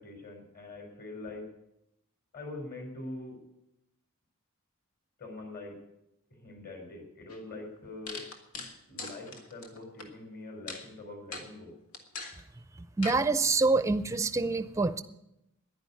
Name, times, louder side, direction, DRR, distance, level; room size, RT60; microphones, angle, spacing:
voice 1, 0.0-1.5 2.3-3.4 5.2-5.8 6.3-8.3 8.9-11.7, left 2 dB, 45° left, 3 dB, 4.1 m, -43 dB
sound 1, 7.3-7.4 8.1-10.1 10.7-10.9 11.3-11.5 11.9-12.4 13.0-13.2, left 3 dB, 85° left, 1.9 m, -40 dB
voice 2, 13.0-15.0, right 3 dB, 15° right, 13 dB, 0.5 m, -26 dB
10.5 x 10.5 x 9.5 m, 0.86 s
head